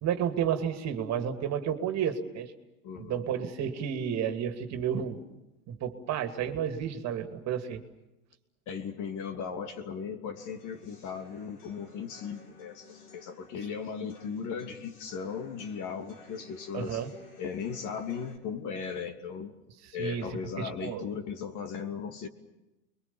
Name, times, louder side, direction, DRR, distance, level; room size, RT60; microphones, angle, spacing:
voice 1, 0.0-2.5 3.0-5.2 5.7-7.8 16.7-17.1 20.0-20.3 20.6-21.0, right 8 dB, 35° right, 8 dB, 2.6 m, -31 dB
voice 2, 2.8-3.2 8.7-17.0 17.4-19.5 19.9-22.3, left 6 dB, 40° left, 7 dB, 3.0 m, -37 dB
sound 1, 10.4-18.4, left 5 dB, 85° left, 6.9 m, -54 dB
29.5 x 22.5 x 7.2 m, 0.98 s
hypercardioid pair, 115°, 44 cm